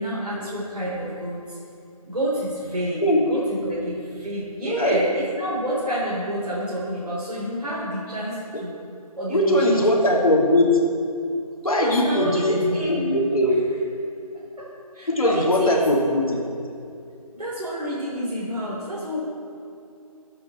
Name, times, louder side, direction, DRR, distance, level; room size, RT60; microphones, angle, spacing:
voice 1, 0.0-1.6 2.0-3.0 3.3-8.8 9.2-10.0 11.8-13.1 14.6-14.7 14.9-15.8 17.3-19.2, equal, 80° right, -7 dB, 3.6 m, -28 dB
voice 2, 4.7-5.0 9.3-10.8 11.6-13.6 15.1-16.4, left 1 dB, 65° left, -1 dB, 2.7 m, -20 dB
17.5 x 8.8 x 4.3 m, 2.6 s
figure-of-eight pair, 180°, 19 cm